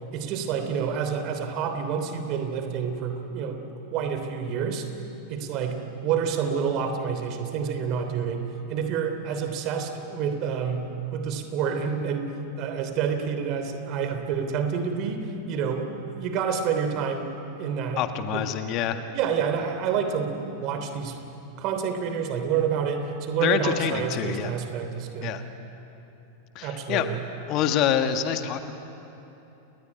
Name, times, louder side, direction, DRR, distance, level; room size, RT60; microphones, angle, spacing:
voice 1, 0.1-3.7 3.9-4.9 5.3-12.3 12.6-17.3 17.6-18.0 18.3-18.4 19.1-21.2 21.6-25.4 26.6-27.2, right 6 dB, 40° right, 7 dB, 3.3 m, -28 dB
voice 2, 18.0-19.0 23.4-24.5 25.2-25.4 26.6-27.1 27.5-28.7, left 9 dB, 40° left, 7 dB, 1.7 m, -26 dB
29.5 x 20.5 x 10.0 m, 3.0 s
figure-of-eight pair, 90°, 0 cm